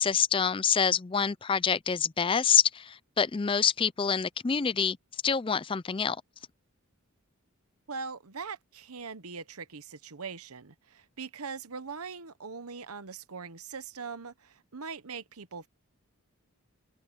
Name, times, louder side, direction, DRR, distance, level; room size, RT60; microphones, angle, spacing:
voice 1, 0.0-5.0 5.2-6.2, left 7 dB, 25° left, 0.4 m, -26 dB
voice 2, 7.9-15.7, right 5 dB, 85° right, 1.1 m, -41 dB
head